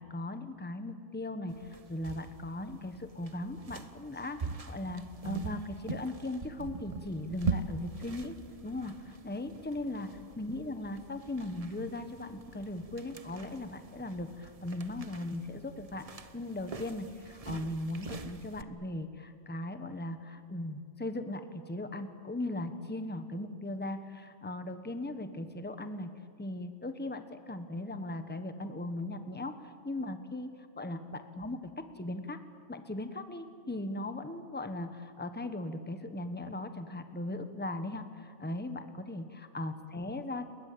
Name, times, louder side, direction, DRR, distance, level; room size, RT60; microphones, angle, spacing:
voice 1, 0.0-8.4 8.6-10.1 10.4-16.1 16.3-26.1 26.4-32.4 32.7-40.5, left 1 dB, 10° left, 9 dB, 1.3 m, -38 dB
sound 1, 1.5-18.6, right 3 dB, 30° right, 0.9 m, -42 dB
29.5 x 22.0 x 8.7 m, 2.2 s
omnidirectional pair, 1.5 m